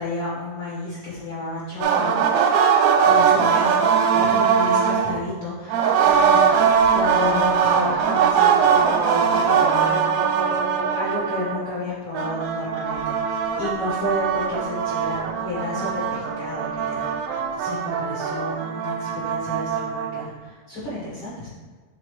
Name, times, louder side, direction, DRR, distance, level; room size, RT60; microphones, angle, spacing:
voice 1, 0.0-2.2 3.1-6.4 6.9-10.6 10.9-15.2 15.4-21.5, left 1 dB, 70° left, -7 dB, 1.2 m, -31 dB
sound 1, 1.8-5.2 5.7-11.8 12.1-20.3, right 6 dB, 80° right, 2.6 m, -21 dB
6.3 x 3.5 x 4.8 m, 1.4 s
omnidirectional pair, 4.7 m